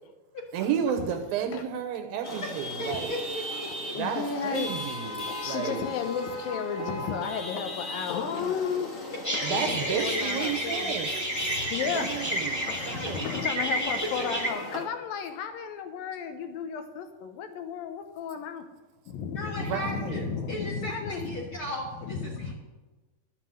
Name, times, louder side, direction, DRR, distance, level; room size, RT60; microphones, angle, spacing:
voice 1, 0.5-3.1 3.9-5.8 9.4-11.1 11.9-13.3 19.6-20.3, right 8 dB, 75° right, 7 dB, 2.7 m, -32 dB
Chatter / Vehicle horn car horn honking / Traffic noise roadway noise, 2.2-14.8, left 1 dB, 35° left, 1.3 m, -37 dB
voice 2, 2.8-4.2 5.4-5.8 8.3-8.4 9.3-10.2 12.9-13.1 14.2-14.3 19.3-22.5, equal, 50° left, -1 dB, 1.6 m, -37 dB
voice 3, 3.9-4.7 5.0-8.9 9.3-10.9 11.4-18.6 19.1-21.4 22.0-22.5, left 7 dB, 75° left, 7 dB, 2.4 m, -34 dB
sound 1, 9.2-14.5, right 1 dB, 10° left, 0.8 m, -31 dB
12.0 x 7.5 x 7.7 m, 1.2 s
omnidirectional pair, 4.5 m